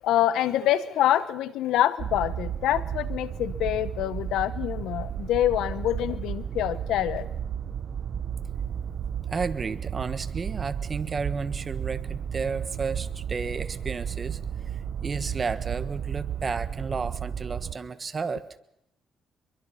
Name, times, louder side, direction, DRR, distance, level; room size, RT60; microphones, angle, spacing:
voice 1, 0.0-7.3, left 12 dB, 85° left, 16 dB, 1.0 m, -26 dB
sound 1, 2.0-17.7, right 8 dB, 60° right, 0.8 m, -33 dB
voice 2, 9.3-18.4, right 5 dB, 35° right, 13 dB, 1.4 m, -32 dB
25.0 x 23.0 x 5.8 m, 0.82 s
cardioid pair, 90°, 0 cm